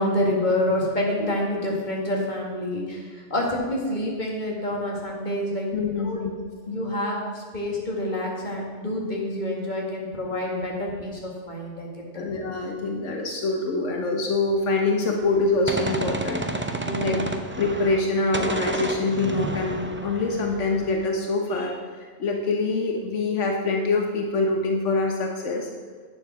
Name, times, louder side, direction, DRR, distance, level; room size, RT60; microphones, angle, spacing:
voice 1, 0.0-6.2 6.7-12.3 16.8-17.2, left 1 dB, 40° left, -2 dB, 2.1 m, -27 dB
voice 2, 5.7-6.4 12.1-16.5 17.0-17.2 17.6-25.7, left 3 dB, 85° left, 1 dB, 1.4 m, -25 dB
Gunshot gunfire, 15.2-18.1 18.3-21.1, right 2 dB, 15° right, 0.4 m, -31 dB
9.2 x 7.4 x 6.2 m, 1.5 s
omnidirectional pair, 1.2 m